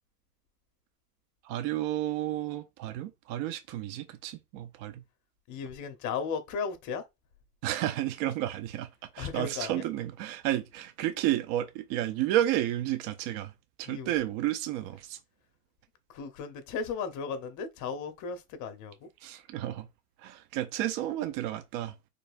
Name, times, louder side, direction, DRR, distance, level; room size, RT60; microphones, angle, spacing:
voice 1, 1.4-5.0 7.6-8.9 9.1-13.5 13.8-15.2 19.2-19.9 20.2-21.9, right 13 dB, 45° right, 0.6 m, -31 dB
voice 2, 5.5-7.0 9.2-9.8 13.9-14.1 16.1-19.1, left 6 dB, 40° left, 1.0 m, -35 dB
4.4 x 3.2 x 2.5 m
hypercardioid pair, 110°, 45 cm